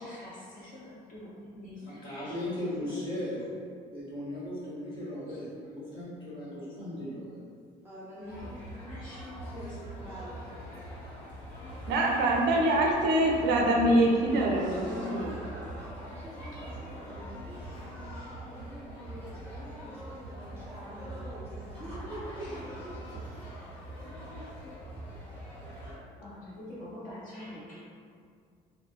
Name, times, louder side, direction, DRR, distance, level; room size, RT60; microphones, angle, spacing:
voice 1, 0.0-3.2 5.3-5.4 8.2-10.4 14.6-15.1 16.5-16.6 17.8-17.9 22.4-22.6 23.1-23.2 23.9-24.0 26.2-27.8, left 1 dB, 50° left, -8 dB, 1.0 m, -46 dB
voice 2, 1.9-3.6 3.9-7.4, left 1 dB, 30° left, -9 dB, 1.5 m, -37 dB
voice 3, 7.8-8.5 9.4-10.5 15.9-23.2, right 1 dB, 15° right, -8 dB, 0.4 m, -46 dB
sound 1, 8.3-25.9, right 1 dB, 10° left, 1.1 m, -43 dB
voice 4, 11.9-15.7, right 1 dB, 85° right, 0 dB, 0.4 m, -25 dB
2.8 x 2.0 x 2.3 m, 2.2 s
cardioid pair, 110°, 17 cm